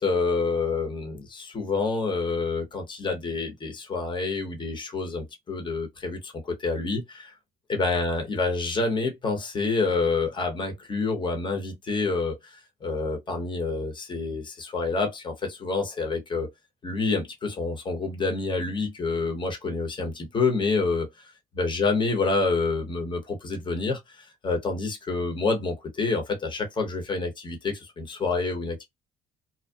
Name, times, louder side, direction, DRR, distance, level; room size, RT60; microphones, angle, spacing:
voice 1, 0.0-7.3 7.7-16.5 16.8-21.1 21.6-28.8, left 3 dB, 30° left, 0.8 m, -28 dB
2.6 x 2.1 x 2.2 m
cardioid pair, 110°, 17 cm